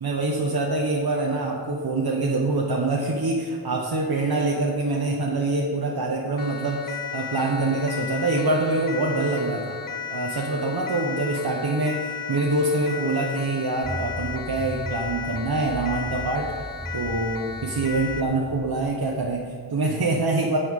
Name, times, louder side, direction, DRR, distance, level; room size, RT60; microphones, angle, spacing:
voice 1, 0.0-9.8 10.1-16.5 16.9-20.6, right 2 dB, 80° right, -2 dB, 1.0 m, -25 dB
Siren, 6.4-18.4, left 8 dB, 60° left, 0.8 m, -35 dB
sound 1, 13.8-19.7, equal, 10° right, 0.8 m, -38 dB
11.0 x 8.4 x 3.7 m, 2.2 s
wide cardioid pair, 70°, 37 cm